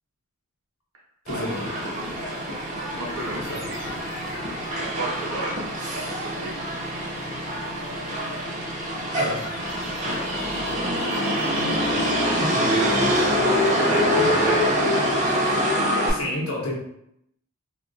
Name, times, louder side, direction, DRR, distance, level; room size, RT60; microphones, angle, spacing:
voice 1, 1.2-1.6 3.5-3.6 9.1-9.4 12.4-12.8 13.1-13.3 14.2-14.3 15.0-15.1 16.1-16.8, left 1 dB, 75° left, -3 dB, 0.9 m, -30 dB
Motor vehicle (road), 1.3-16.1, equal, 35° right, 0.5 m, -25 dB
voice 2, 2.9-3.8 4.8-5.5 5.9-6.7 10.0-10.3 10.7-11.8 12.7-12.9 13.7-14.1 14.5-14.6, right 2 dB, 70° right, -3 dB, 0.9 m, -34 dB
sound 1, 3.0-4.5 9.3-14.0, left 2 dB, 40° left, 0.6 m, -42 dB
3.3 x 2.3 x 2.6 m, 0.76 s
head